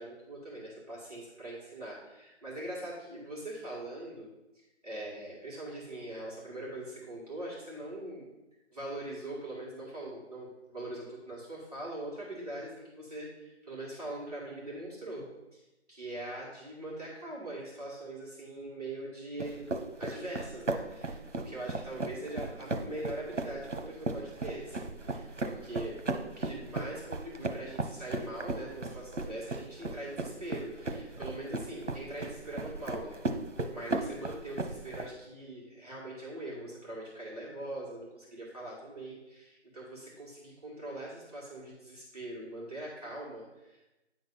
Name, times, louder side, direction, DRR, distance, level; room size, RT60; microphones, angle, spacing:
voice 1, 0.0-4.3 4.8-8.3 8.7-15.6 15.9-19.7 20.0-26.0 26.4-33.2 33.7-43.9, right 1 dB, 35° right, -7 dB, 2.0 m, -42 dB
sound 1, 19.4-35.1, right 2 dB, 85° right, 1.0 m, -36 dB
9.5 x 3.9 x 5.6 m, 0.99 s
figure-of-eight pair, 170°, 35 cm